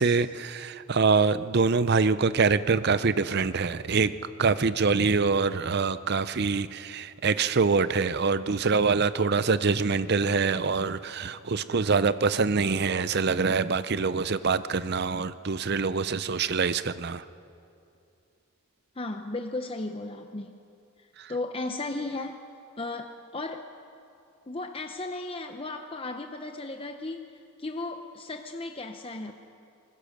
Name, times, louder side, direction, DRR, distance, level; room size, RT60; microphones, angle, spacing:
voice 1, 0.0-4.1 4.4-17.2 21.2-21.3, right 4 dB, 50° right, 0.6 m, -25 dB
voice 2, 19.0-20.6 21.3-22.4 22.8-23.6 24.5-27.3 27.6-29.3, left 2 dB, 25° left, 0.7 m, -35 dB
24.5 x 20.5 x 6.6 m
head